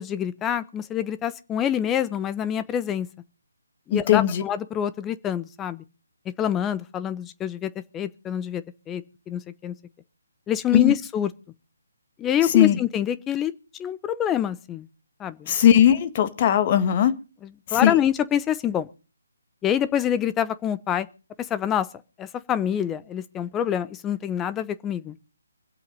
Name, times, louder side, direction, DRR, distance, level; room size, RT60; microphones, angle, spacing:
voice 1, 0.0-3.1 3.9-5.8 6.4-9.7 10.5-11.3 12.2-13.5 13.8-14.9 15.2-15.4 17.4-18.9 19.6-21.1 21.4-21.9 22.2-25.2, left 10 dB, 15° left, 0.9 m, -26 dB
voice 2, 3.9-4.4 10.7-10.9 12.5-12.8 15.5-17.1 17.8-18.0, left 10 dB, 35° left, 1.8 m, -18 dB
24.5 x 8.2 x 5.4 m
figure-of-eight pair, 150°, 0 cm